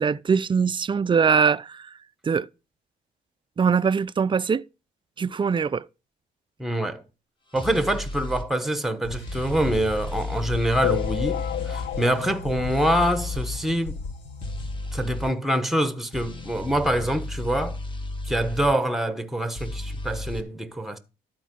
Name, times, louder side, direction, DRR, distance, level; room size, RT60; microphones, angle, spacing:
voice 1, 0.0-1.9 2.2-2.5 3.6-4.6 5.2-5.8, right 6 dB, 25° right, 0.4 m, -22 dB
voice 2, 6.6-7.0 7.5-14.0 14.9-17.8 18.2-21.0, right 1 dB, ahead, 1.2 m, -25 dB
sound 1, 7.5-8.5 9.3-11.9 12.7-13.6 14.4-15.3 16.1-18.8 19.5-20.4, left 2 dB, 25° left, 1.6 m, -33 dB
sound 2, 9.0-14.7, left 3 dB, 75° left, 3.7 m, -37 dB
sound 3, 10.8-13.7 14.2-14.3 14.4-14.6 14.9-15.0 15.8-15.9 16.4-16.5, left 13 dB, 55° left, 0.4 m, -32 dB
12.5 x 4.6 x 6.2 m
cardioid pair, 90°, 20 cm